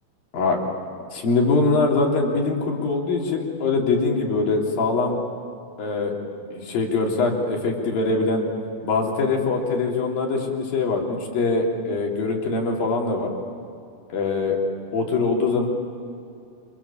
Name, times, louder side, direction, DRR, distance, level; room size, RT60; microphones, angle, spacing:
voice 1, 1.1-5.2 5.8-6.1 6.5-8.4 8.8-13.3 14.1-14.6 14.9-15.7, left 3 dB, 55° left, 0 dB, 4.9 m, -23 dB
29.5 x 27.5 x 7.2 m, 2.5 s
omnidirectional pair, 5.1 m